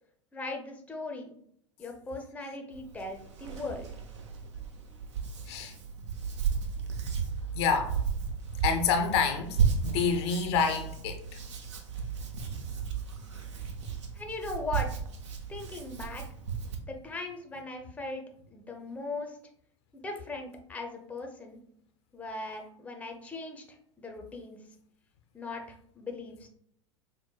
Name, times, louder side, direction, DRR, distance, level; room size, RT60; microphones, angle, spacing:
voice 1, 0.3-1.3 1.8-3.9 14.1-14.9 15.5-16.2 16.9-18.2 18.5-19.4 19.9-21.6 22.1-23.6 24.0-24.6 25.3-26.5, left 2 dB, 10° left, 0.6 m, -39 dB
Hands, 2.7-16.8, right 6 dB, 70° right, 0.6 m, -34 dB
voice 2, 7.5-8.0 8.6-11.2, left 6 dB, 60° left, 0.5 m, -28 dB
5.4 x 2.1 x 2.2 m
figure-of-eight pair, 85°, 16 cm